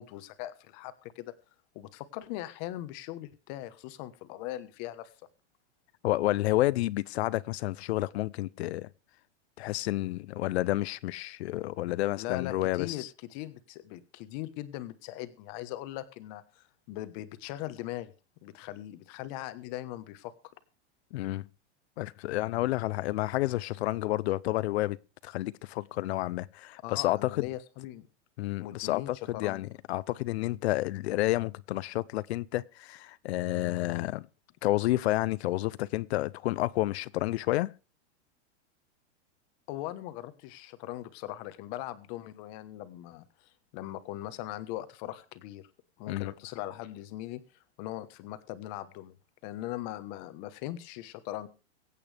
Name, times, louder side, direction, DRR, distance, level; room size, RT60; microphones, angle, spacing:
voice 1, 0.0-1.3 1.7-5.1 12.2-13.0 13.3-18.1 18.4-20.3 26.8-28.1 28.6-29.7 39.7-45.7 46.0-47.4 47.8-49.2 49.4-51.5, left 14 dB, 40° left, 1.2 m, -40 dB
voice 2, 6.0-8.9 9.6-13.1 21.1-21.5 22.0-25.0 25.2-27.5 28.4-34.3 34.6-37.7 46.1-46.3, left 17 dB, 65° left, 0.7 m, -30 dB
23.0 x 8.5 x 3.4 m
supercardioid pair, 160°, 35 cm